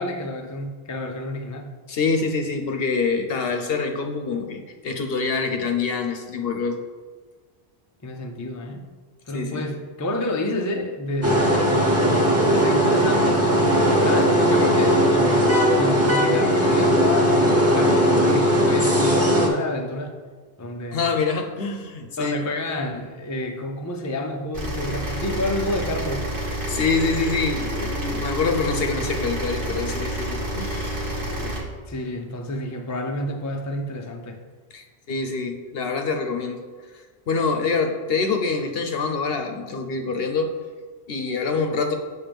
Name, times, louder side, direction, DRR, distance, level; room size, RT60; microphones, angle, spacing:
voice 1, 0.0-1.8 8.0-8.9 9.3-13.5 13.7-20.2 20.6-21.1 22.2-26.4 31.3-31.6 31.9-34.4, left 1 dB, 25° left, 3 dB, 0.4 m, -29 dB
voice 2, 1.9-6.8 9.3-9.7 20.9-22.4 26.7-31.2 34.7-36.6 37.3-40.5 41.1-41.9, left 4 dB, 65° left, 4 dB, 0.9 m, -25 dB
sound 1, 11.2-19.5, equal, 15° right, 1.0 m, -18 dB
sound 2, 24.5-31.6, right 1 dB, 55° right, 1.4 m, -29 dB
7.4 x 6.1 x 3.5 m, 1.5 s
omnidirectional pair, 1.1 m